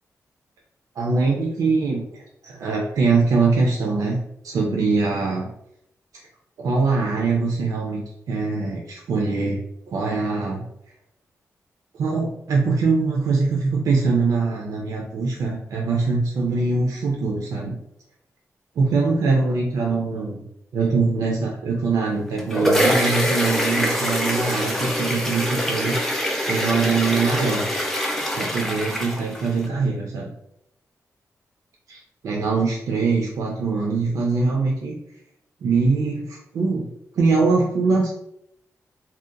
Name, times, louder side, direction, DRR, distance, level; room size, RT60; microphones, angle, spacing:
voice 1, 1.0-4.2 4.4-5.5 6.6-9.6 9.9-10.6 11.9-17.8 18.8-20.4 20.7-26.0 26.5-27.7 28.4-30.3 31.9-35.0 35.6-36.9 37.1-38.1, right 4 dB, 80° right, -1 dB, 0.4 m, -22 dB
sound 1, 22.2-29.7, equal, 5° left, 0.4 m, -24 dB
2.7 x 2.1 x 2.4 m, 0.78 s
wide cardioid pair, 130°, 6 cm